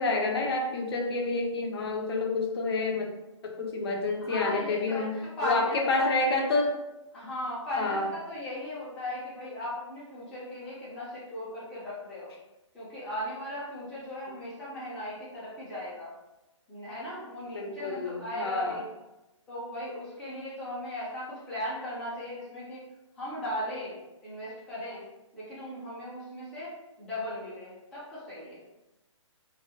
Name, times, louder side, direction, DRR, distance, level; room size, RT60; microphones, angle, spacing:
voice 1, 0.0-3.1 3.4-6.8 7.8-8.1 17.5-18.8, left 3 dB, 50° left, 2 dB, 0.5 m, -29 dB
voice 2, 4.2-5.1 5.4-6.1 7.1-12.3 12.7-16.1 16.7-18.9 19.5-22.8 23.2-24.0 24.2-25.0 25.3-26.7 27.0-28.6, left 1 dB, 5° left, -11 dB, 0.5 m, -37 dB
2.3 x 2.1 x 2.8 m, 0.99 s
hypercardioid pair, 140°, 16 cm